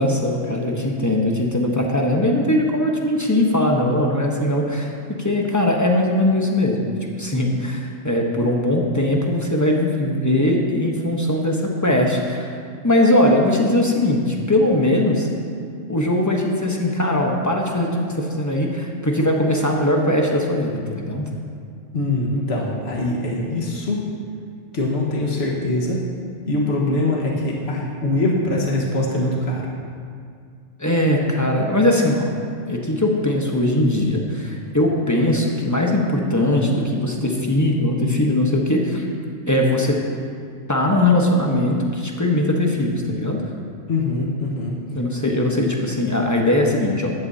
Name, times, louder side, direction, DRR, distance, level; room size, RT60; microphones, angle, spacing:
voice 1, 0.0-12.6 12.8-15.3 15.9-21.3 30.8-32.3 32.7-39.0 39.5-40.0 40.7-43.4 44.9-47.1, left 1 dB, 15° left, 0 dB, 1.0 m, -20 dB
voice 2, 21.9-24.0 24.7-26.0 26.4-29.7 43.9-44.8, left 2 dB, 55° left, -2 dB, 1.7 m, -23 dB
14.5 x 10.5 x 2.8 m, 2.3 s
omnidirectional pair, 1.3 m